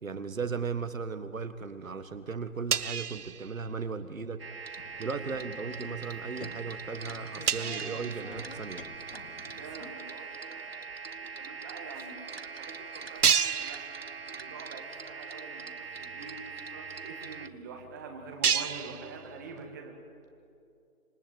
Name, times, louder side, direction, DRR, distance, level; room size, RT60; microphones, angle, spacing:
voice 1, 0.0-4.5 5.0-8.9, right 5 dB, 60° right, 10 dB, 1.8 m, -36 dB
sound 1, 0.8-1.6 1.9-4.1 4.4-4.7 5.2-5.5 6.1-6.2 6.5-6.6 6.8-6.9 7.5-9.1 9.7-9.8 10.9-11.0 11.2-11.3 12.0-12.1 12.5-12.6 13.2-14.6 15.0-15.1 15.6-15.7 15.9-19.7, right 7 dB, 90° right, 0.9 m, -32 dB
sound 2, 4.4-17.5, right 5 dB, 40° right, 1.0 m, -42 dB
sound 3, 4.8-9.9, left 4 dB, 40° left, 1.3 m, -49 dB
voice 2, 9.5-12.2 12.4-13.8 14.3-19.9, right 4 dB, 15° right, 1 dB, 1.6 m, -46 dB
26.5 x 24.5 x 9.2 m, 2.6 s
figure-of-eight pair, 165°, 44 cm